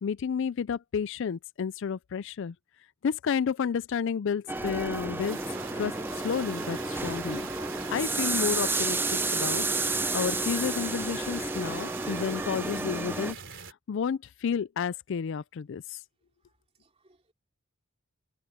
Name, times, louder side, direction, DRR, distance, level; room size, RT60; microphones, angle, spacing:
voice 1, 0.0-2.5 3.0-5.4 5.8-5.9 6.2-7.4 7.9-9.6 10.1-13.4 13.6-16.0, left 6 dB, 60° left, 0.4 m, -31 dB
sound 1, 4.5-13.3, right 3 dB, 10° right, 0.6 m, -31 dB
sound 2, 4.5-13.7, right 7 dB, 60° right, 3.7 m, -43 dB
voice 2, 16.4-17.3, right 2 dB, 30° right, 3.2 m, -67 dB
head